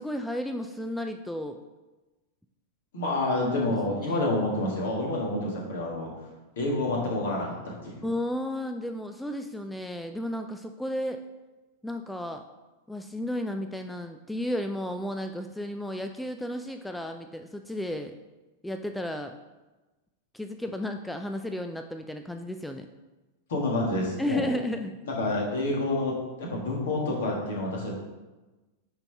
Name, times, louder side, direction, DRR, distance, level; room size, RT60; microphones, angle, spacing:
voice 1, 0.0-1.6 3.6-3.7 8.0-11.2 11.8-12.4 12.9-18.1 18.6-19.3 20.3-22.9 24.2-24.9, left 1 dB, 5° left, 6 dB, 0.4 m, -33 dB
voice 2, 2.9-6.1 6.6-8.1 23.5-24.5 25.0-27.9, left 2 dB, 60° left, -2 dB, 1.9 m, -28 dB
9.5 x 4.1 x 3.4 m, 1.1 s
figure-of-eight pair, 95°, 0 cm